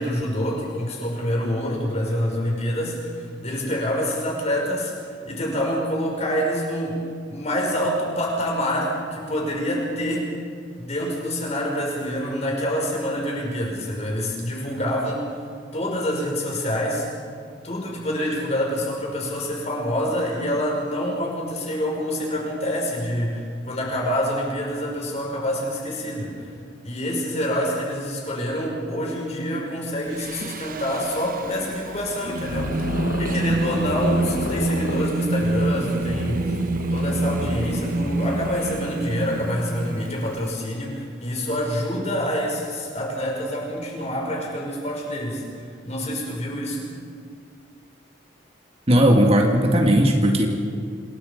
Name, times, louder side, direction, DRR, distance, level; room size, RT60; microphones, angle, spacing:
voice 1, 0.0-7.0 7.3-10.4 10.8-15.3 15.7-17.1 17.6-26.5 26.8-32.9 33.2-36.6 36.9-45.4 45.8-46.9, equal, 40° left, -1 dB, 5.7 m, -26 dB
Singing, 30.1-40.5, right 2 dB, 50° right, 1.1 m, -27 dB
sound 1, 31.8-39.0, left 2 dB, 70° left, 1.1 m, -34 dB
voice 2, 48.9-50.5, equal, 35° right, 2 dB, 2.0 m, -17 dB
27.5 x 22.0 x 5.3 m, 2.2 s
head